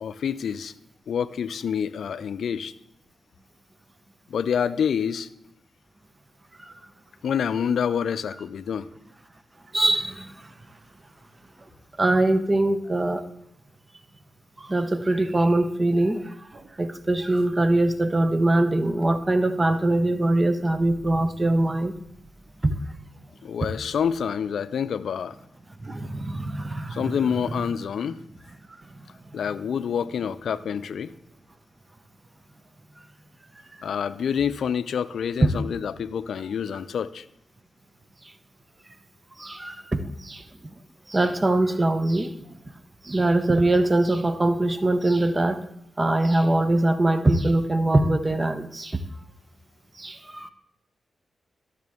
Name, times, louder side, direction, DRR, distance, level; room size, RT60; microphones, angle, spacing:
voice 1, 0.0-0.7 1.1-2.7 4.3-5.3 7.2-8.9 23.4-25.4 26.9-28.2 29.3-31.1 33.8-37.3, left 7 dB, 75° left, 0.3 m, -27 dB
voice 2, 9.7-10.3 12.0-13.3 14.6-21.9 22.6-22.8 25.8-27.2 39.4-40.4 41.1-42.3 43.0-45.6 46.0-49.0 50.0-50.5, right 2 dB, 30° right, 0.8 m, -23 dB
12.5 x 6.6 x 3.5 m
supercardioid pair, 40°, 0 cm